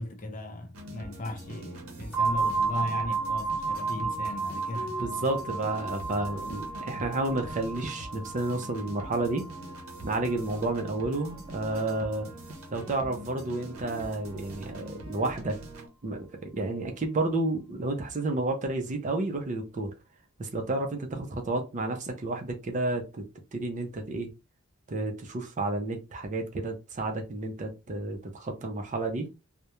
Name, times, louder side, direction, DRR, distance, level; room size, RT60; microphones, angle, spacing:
voice 1, 0.0-4.9, left 1 dB, 40° left, 0.5 m, -37 dB
sound 1, 0.7-15.9, right 1 dB, 85° right, 0.7 m, -44 dB
sound 2, 2.1-11.8, right 4 dB, ahead, 0.7 m, -33 dB
voice 2, 4.8-9.4 10.0-12.3 12.7-15.6 16.0-19.9 20.4-23.2 23.5-24.3 24.9-29.3, right 2 dB, 35° right, 0.4 m, -31 dB
2.3 x 2.1 x 2.9 m
head